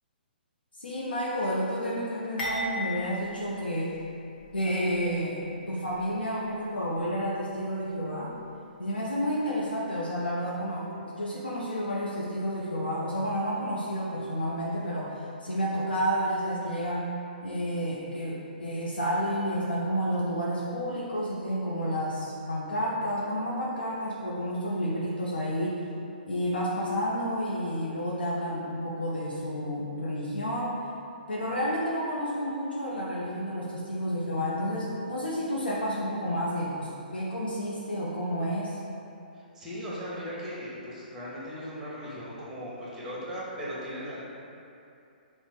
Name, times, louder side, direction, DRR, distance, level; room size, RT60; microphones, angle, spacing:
voice 1, 0.8-3.9 4.5-8.3 8.8-17.1 17.4-25.8 26.3-30.8 31.3-38.8, equal, 75° left, -6 dB, 0.5 m, -30 dB
sound 1, 2.4-4.5 4.9-5.1 5.9-6.1, equal, 55° left, 1.2 m, -36 dB
voice 2, 39.3-44.2, equal, 10° right, -8 dB, 1.0 m, -38 dB
3.9 x 2.0 x 4.3 m, 2.7 s
figure-of-eight pair, 120°, 5 cm